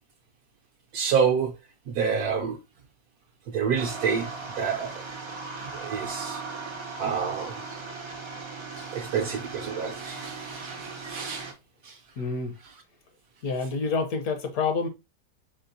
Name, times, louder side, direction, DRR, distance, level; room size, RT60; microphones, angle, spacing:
voice 1, 0.9-1.5 1.9-2.6 3.5-4.3 4.6-5.0 5.6-6.4 7.0-7.6 8.8-11.5 11.8-12.0, right 6 dB, 70° right, 1.1 m, -28 dB
sound 1, 3.8-11.5, right 4 dB, 50° right, 0.3 m, -38 dB
voice 2, 12.2-12.6 13.4-14.9, left 4 dB, 65° left, 1.2 m, -28 dB
4.4 x 4.2 x 2.6 m
omnidirectional pair, 1.8 m